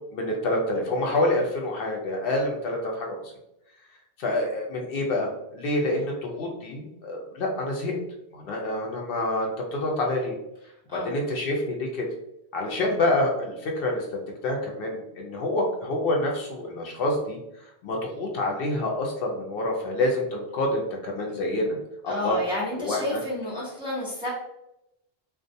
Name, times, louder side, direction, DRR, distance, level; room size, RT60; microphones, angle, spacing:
voice 1, 0.1-3.3 4.2-8.0 8.3-10.3 10.9-12.1 12.5-17.4 17.8-21.8 22.0-22.4 22.8-23.2, left 1 dB, 65° left, 0 dB, 0.8 m, -27 dB
voice 2, 22.1-24.3, left 1 dB, 5° right, -10 dB, 1.1 m, -30 dB
2.3 x 2.2 x 2.6 m, 0.84 s
omnidirectional pair, 1.1 m